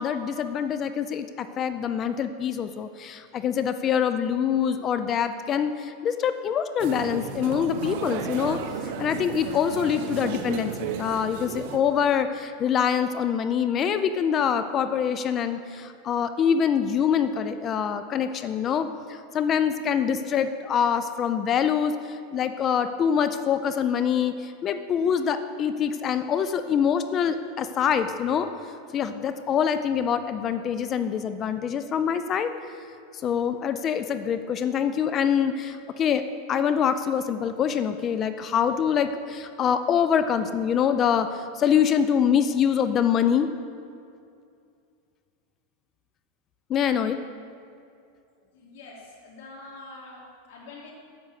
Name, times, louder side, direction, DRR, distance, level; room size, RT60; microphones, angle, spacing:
voice 1, 0.0-8.6 9.0-18.9 19.3-28.5 28.9-32.5 33.2-36.2 36.5-41.3 41.6-43.5 46.7-47.2, left 8 dB, 30° left, 10 dB, 0.4 m, -25 dB
sound 1, 6.8-11.8, right 7 dB, 55° right, 0.9 m, -33 dB
voice 2, 48.5-50.9, left 2 dB, 70° left, -4 dB, 3.0 m, -45 dB
8.4 x 6.3 x 8.1 m, 2.4 s
supercardioid pair, 150°, 0 cm